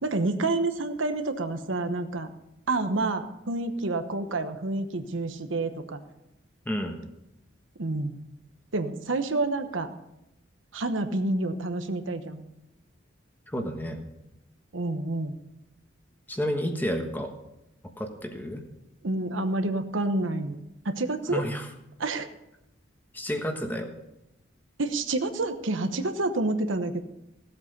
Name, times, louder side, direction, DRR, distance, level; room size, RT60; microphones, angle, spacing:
voice 1, 0.0-2.3 2.7-6.0 7.8-8.2 8.7-9.9 10.7-12.4 14.7-15.4 19.0-21.4 22.0-22.3 24.8-27.0, right 2 dB, 85° right, 7 dB, 1.0 m, -28 dB
voice 2, 6.6-7.0 13.5-14.0 16.3-17.3 18.0-18.6 21.3-21.7 23.1-23.9, equal, 10° left, 4 dB, 1.3 m, -30 dB
16.0 x 8.1 x 5.3 m, 0.87 s
head